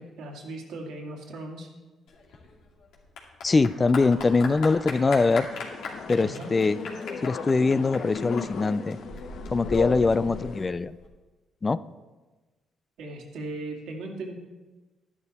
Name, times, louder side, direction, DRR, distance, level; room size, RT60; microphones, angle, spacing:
voice 1, 0.0-1.7 6.2-6.5 13.0-14.3, right 2 dB, 80° right, 0 dB, 2.3 m, -38 dB
Clapping / Applause, 2.1-11.1, left 3 dB, 80° left, 2.5 m, -39 dB
voice 2, 3.4-5.5 6.1-6.8 7.2-9.0 9.5-11.0 11.6-11.8, left 3 dB, 30° left, 16 dB, 0.4 m, -22 dB
sound 1, 5.5-10.7, left 5 dB, 65° left, 0.9 m, -36 dB
11.5 x 11.0 x 4.2 m, 1.2 s
cardioid pair, 90°, 0 cm